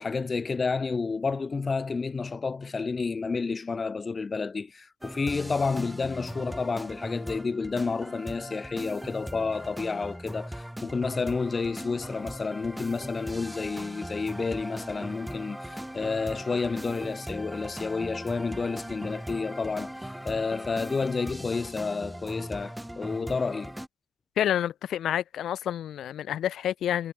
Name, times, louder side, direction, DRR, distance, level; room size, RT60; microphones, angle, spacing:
voice 1, 0.0-23.7, left 4 dB, 30° left, 1.0 m, -30 dB
sound 1, 5.0-23.9, equal, 5° right, 0.7 m, -39 dB
voice 2, 24.4-27.1, left 11 dB, 70° left, 0.8 m, -28 dB
cardioid pair, 90°, 0 cm